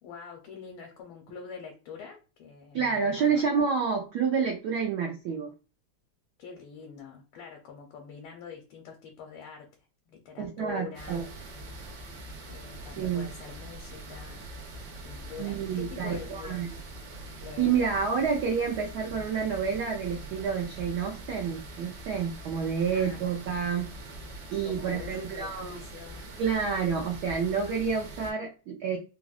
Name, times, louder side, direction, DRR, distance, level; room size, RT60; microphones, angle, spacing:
voice 1, 0.0-3.5 6.4-9.7 10.1-11.2 12.5-14.4 15.0-16.8 17.4-18.0 22.9-23.2 24.6-26.2, left 6 dB, 80° left, 1 dB, 1.4 m, -45 dB
voice 2, 2.7-5.5 10.4-11.3 13.0-13.3 15.4-16.7 17.6-24.0 24.5-25.8 26.4-29.0, right 6 dB, 80° right, 0 dB, 0.9 m, -29 dB
Paronella Park - Falls, 10.9-28.3, right 2 dB, 65° right, 1.1 m, -43 dB
3.8 x 2.0 x 2.3 m, 0.33 s
omnidirectional pair, 2.3 m